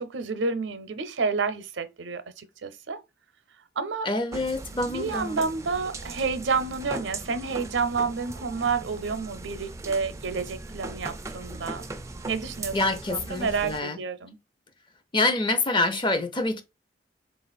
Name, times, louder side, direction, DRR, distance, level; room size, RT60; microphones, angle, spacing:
voice 1, 0.0-3.0 3.8-4.1 4.7-11.9 12.2-14.4, right 4 dB, 80° right, 0.6 m, -30 dB
voice 2, 4.0-5.4 12.7-14.0 15.1-16.6, left 2 dB, 25° left, 0.6 m, -26 dB
sound 1, 4.3-13.8, right 2 dB, 15° right, 0.3 m, -39 dB
3.8 x 2.4 x 4.0 m
head